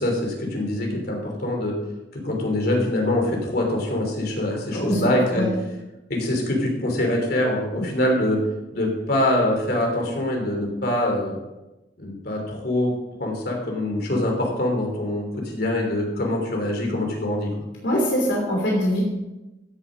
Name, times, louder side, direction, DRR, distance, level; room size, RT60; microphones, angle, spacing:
voice 1, 0.0-1.7 2.1-5.5 6.1-8.4 8.7-11.4 12.0-12.9 13.2-15.3 15.5-17.5, left 1 dB, 60° left, 1 dB, 3.2 m, -24 dB
voice 2, 4.7-5.5 17.8-19.0, equal, 80° left, -2 dB, 3.1 m, -23 dB
15.5 x 7.3 x 5.2 m, 1.0 s
head